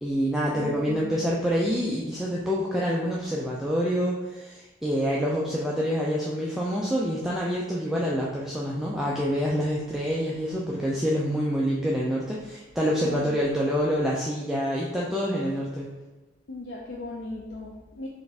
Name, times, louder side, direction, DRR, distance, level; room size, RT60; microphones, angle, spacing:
voice 1, 0.0-15.9, equal, ahead, -5 dB, 0.3 m, -27 dB
voice 2, 0.5-1.8 13.0-13.4 16.5-18.1, left 2 dB, 65° left, -2 dB, 0.4 m, -38 dB
4.0 x 2.5 x 3.4 m, 1.2 s
head